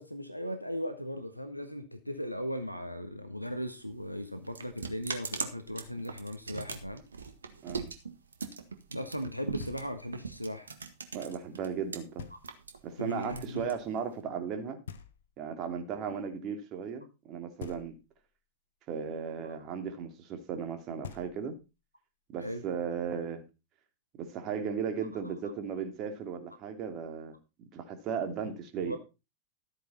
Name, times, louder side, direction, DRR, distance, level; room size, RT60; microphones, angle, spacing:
voice 1, 0.0-7.0 8.9-10.7 13.0-13.7 22.4-22.6 28.8-29.0, equal, 90° right, 7 dB, 1.5 m, -37 dB
sound 1, 3.8-12.0 12.3-14.2, right 5 dB, 70° right, 1.8 m, -40 dB
Knock, 9.6-10.3 12.2-12.8 14.9-15.7 17.6-18.4 20.7-20.8 21.0-21.8, left 7 dB, 65° left, 1.4 m, -47 dB
voice 2, 11.1-12.3 12.8-14.8 15.4-17.9 18.9-21.6 22.3-23.4 24.2-29.0, right 7 dB, 35° right, 7 dB, 2.8 m, -36 dB
13.5 x 9.1 x 4.2 m, 0.28 s
figure-of-eight pair, 90°, 0 cm